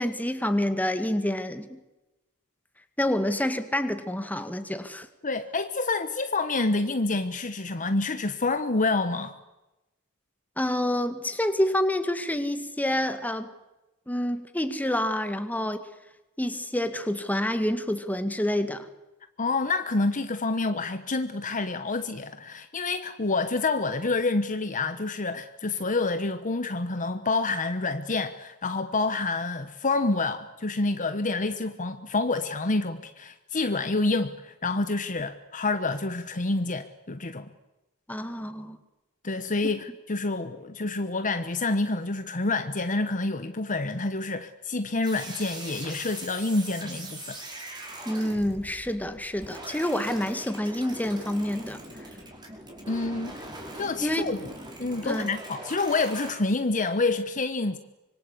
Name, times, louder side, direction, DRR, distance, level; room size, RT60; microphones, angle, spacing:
voice 1, 0.0-1.8 3.0-5.1 10.6-13.5 14.1-15.9 16.4-18.9 38.1-38.8 48.1-51.8 54.0-54.2 55.0-55.3, left 1 dB, 5° left, 1.9 m, -28 dB
voice 2, 5.2-9.3 19.4-37.5 39.2-47.4 52.9-53.4 53.8-54.5 54.8-57.8, left 3 dB, 35° left, 1.2 m, -28 dB
sound 1, 45.0-56.3, right 1 dB, 20° right, 5.2 m, -41 dB
25.5 x 24.0 x 8.4 m
head